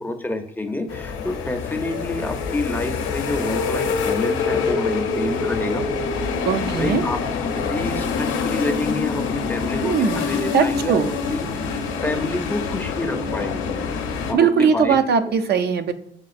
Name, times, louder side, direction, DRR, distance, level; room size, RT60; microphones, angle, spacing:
voice 1, 0.0-5.9 6.8-7.2 7.5-11.0 11.3-13.7 14.3-15.0, left 2 dB, 10° left, 4 dB, 0.6 m, -28 dB
sound 1, 0.9-14.3, left 5 dB, 85° left, 0.6 m, -25 dB
voice 2, 6.5-7.0 9.8-11.1 14.3-15.9, right 6 dB, 55° right, 9 dB, 0.5 m, -20 dB
6.5 x 2.4 x 2.5 m, 0.73 s
cardioid pair, 90°, 20 cm